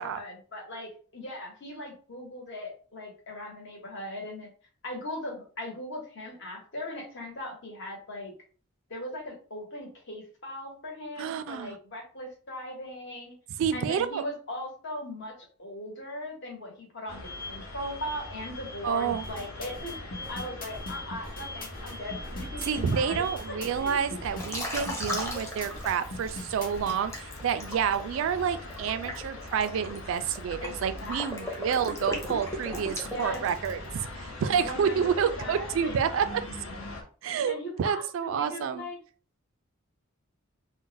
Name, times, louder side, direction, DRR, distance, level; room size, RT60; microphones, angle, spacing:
voice 1, 0.0-4.5 4.8-8.3 8.9-13.3 13.7-19.9 20.3-23.9 30.6-31.8 33.1-33.4 34.5-35.9 37.5-39.0, left 1 dB, 60° left, 0 dB, 1.1 m, -39 dB
voice 2, 11.2-11.8 13.6-14.2 18.8-19.2 22.7-36.4 37.2-38.9, right 7 dB, 70° right, 11 dB, 0.3 m, -29 dB
sound 1, 17.1-37.0, left 2 dB, 75° left, 0.8 m, -41 dB
sound 2, 19.1-27.0, left 1 dB, 45° left, 0.8 m, -41 dB
Liquid, 24.4-26.4 26.9-33.9, left 1 dB, 15° left, 0.7 m, -37 dB
2.5 x 2.1 x 3.9 m, 0.40 s
head